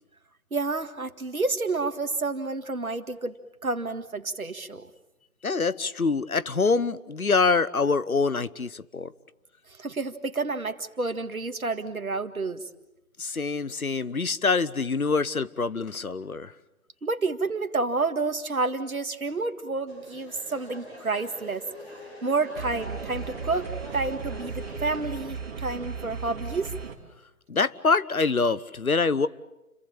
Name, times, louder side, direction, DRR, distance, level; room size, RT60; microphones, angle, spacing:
voice 1, 0.5-4.9 9.7-12.6 17.0-21.6 22.2-23.7 23.9-26.7, right 3 dB, 70° right, 8 dB, 2.0 m, -29 dB
voice 2, 5.4-9.1 13.2-16.5 27.5-29.3, left 4 dB, 75° left, 17 dB, 1.1 m, -25 dB
sound 1, 19.9-25.0, equal, 20° left, 7.8 m, -43 dB
sound 2, 22.6-27.0, right 5 dB, 40° right, 3.4 m, -36 dB
29.5 x 23.0 x 8.7 m, 0.97 s
figure-of-eight pair, 150°, 43 cm